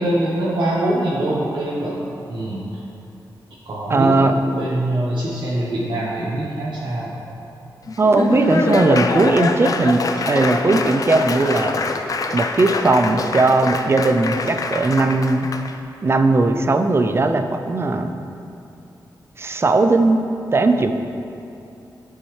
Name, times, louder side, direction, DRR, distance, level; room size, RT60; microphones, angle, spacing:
voice 1, 0.0-2.8 3.6-7.2, right 1 dB, 80° right, -8 dB, 1.2 m, -24 dB
voice 2, 3.9-4.3 8.0-11.8 12.3-15.5 16.0-18.1 19.4-20.2 20.5-20.9, right 3 dB, 35° right, 7 dB, 0.4 m, -18 dB
Laughter / Applause, 7.9-15.7, left 3 dB, 50° left, 0.4 m, -24 dB
12.0 x 5.4 x 3.2 m, 2.7 s
wide cardioid pair, 130°, 8 cm